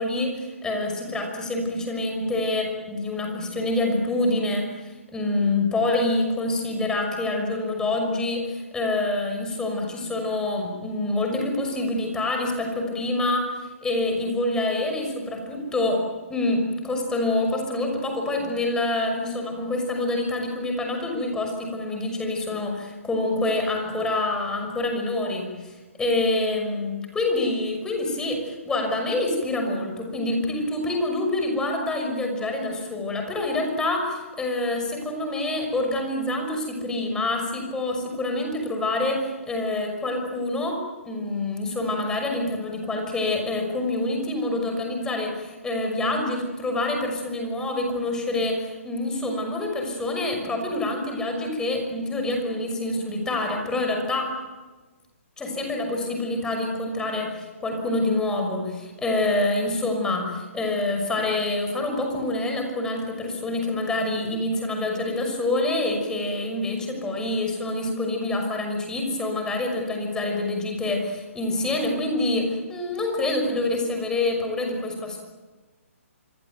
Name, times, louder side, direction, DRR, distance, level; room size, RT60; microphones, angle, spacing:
voice 1, 0.0-13.5 13.8-16.0 16.3-54.4 55.4-75.2, left 2 dB, 10° left, 3 dB, 6.0 m, -26 dB
26.5 x 24.0 x 9.3 m, 1.3 s
figure-of-eight pair, 135°, 8 cm